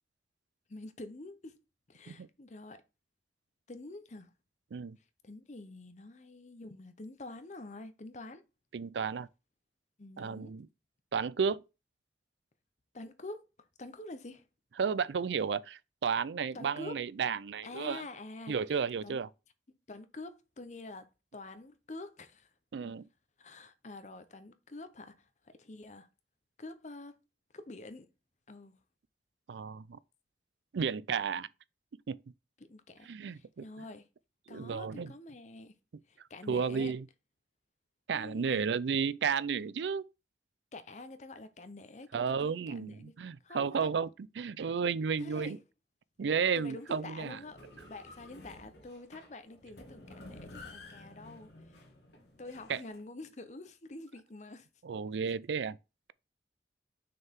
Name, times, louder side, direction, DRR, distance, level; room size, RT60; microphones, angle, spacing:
voice 1, 0.7-1.6 1.9-2.8 3.7-4.3 5.2-8.4 10.0-10.6 12.9-13.4 13.8-14.4 16.5-17.0 17.6-18.6 19.0-19.2 19.9-22.5 23.4-25.3 25.5-26.1 26.6-27.2 27.5-28.1 28.5-28.8 32.6-34.1 34.5-35.7 36.1-36.9 38.1-38.7 40.7-43.1 43.4-43.9 45.2-45.6 46.6-47.6 47.9-51.5 52.4-54.7, left 2 dB, 40° left, 0.8 m, -47 dB
voice 2, 8.7-9.3 10.2-10.7 11.1-11.6 14.8-18.0 18.5-19.3 22.7-23.1 29.5-30.0 30.7-31.5 32.1-32.2 33.0-33.6 34.5-35.1 36.5-37.1 38.1-40.0 42.1-44.1 44.4-45.6 46.2-47.4 52.7-52.8 54.8-55.7, right 6 dB, 85° right, 0.4 m, -32 dB
sound 1, 46.8-53.0, left 2 dB, 75° left, 2.0 m, -52 dB
6.4 x 4.5 x 3.6 m
head